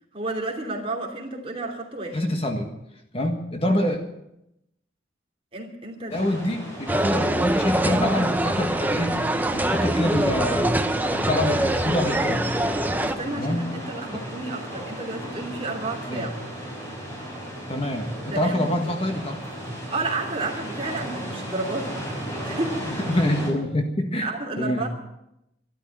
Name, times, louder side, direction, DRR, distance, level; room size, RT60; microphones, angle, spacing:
voice 1, 0.1-2.2 5.5-6.4 13.0-16.4 18.3-18.8 19.9-22.0 22.4-23.0 24.2-24.9, right 2 dB, 30° right, 0 dB, 2.9 m, -31 dB
voice 2, 2.1-2.7 3.1-4.0 6.1-9.2 9.5-10.7 11.1-12.4 13.4-13.7 14.1-14.2 16.1-16.3 17.7-19.4 23.1-24.3 24.6-24.9, left 1 dB, 30° left, 4 dB, 1.5 m, -25 dB
sound 1, 6.1-23.5, equal, 15° left, 5.7 m, -35 dB
sound 2, 6.9-13.1, right 1 dB, 10° right, 0.6 m, -24 dB
12.5 x 12.5 x 9.1 m, 0.84 s
head